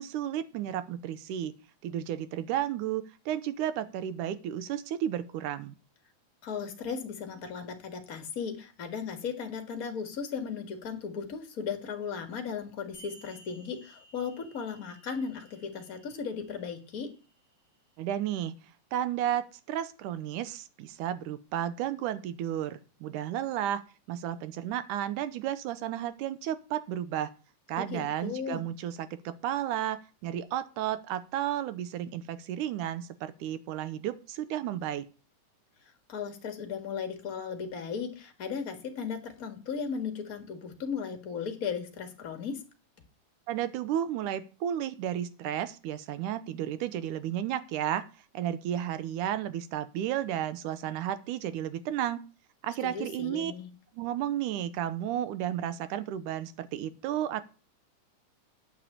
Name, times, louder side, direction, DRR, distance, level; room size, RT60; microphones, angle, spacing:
voice 1, 0.0-1.5 1.8-5.7 18.0-18.5 18.9-23.8 24.1-27.3 27.7-35.1 43.5-48.1 48.3-52.2 52.6-53.5 53.9-57.4, right 11 dB, 80° right, 14 dB, 2.2 m, -33 dB
voice 2, 6.4-17.1 27.8-28.6 36.1-42.6 52.8-53.7, left 6 dB, 40° left, 6 dB, 1.5 m, -36 dB
sound 1, 12.9-17.9, right 1 dB, 15° left, 3.9 m, -57 dB
9.4 x 6.2 x 8.4 m, 0.35 s
omnidirectional pair, 3.7 m